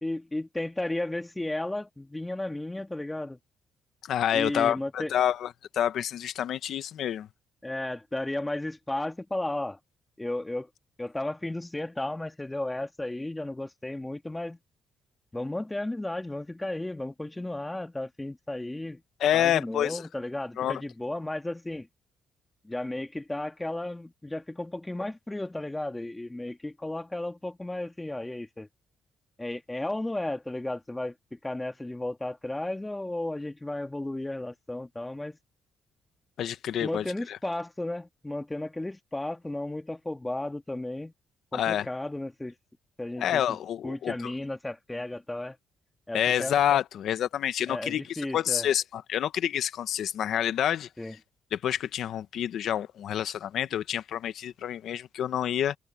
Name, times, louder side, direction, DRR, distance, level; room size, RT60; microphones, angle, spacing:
voice 1, 0.0-3.4 4.3-5.1 7.6-9.8 10.2-10.7 11.0-14.6 15.3-19.0 19.3-21.9 22.6-28.7 29.4-31.1 31.4-35.4 36.8-41.1 41.5-42.5 43.0-43.6 43.8-45.6 46.1-46.5 47.7-48.7 51.0-51.1, left 1 dB, 10° left, 1.6 m, -34 dB
voice 2, 4.1-7.3 19.2-20.0 20.6-20.8 36.4-37.4 41.5-41.9 43.2-44.3 46.1-50.9 51.5-55.8, left 10 dB, 70° left, 1.0 m, -28 dB
cardioid pair, 90°, 0 cm